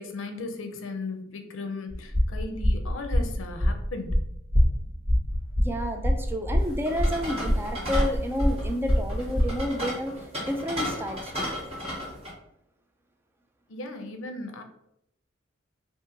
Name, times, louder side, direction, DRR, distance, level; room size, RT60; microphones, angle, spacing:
voice 1, 0.0-4.2 13.7-14.6, left 3 dB, 70° left, 6 dB, 0.5 m, -36 dB
sound 1, 1.9-9.6, equal, 50° right, 1.1 m, -24 dB
voice 2, 5.6-11.6, equal, 10° right, 4 dB, 0.4 m, -31 dB
sound 2, 6.6-12.3, equal, 30° right, 1.5 m, -35 dB
2.8 x 2.6 x 3.7 m, 0.79 s
head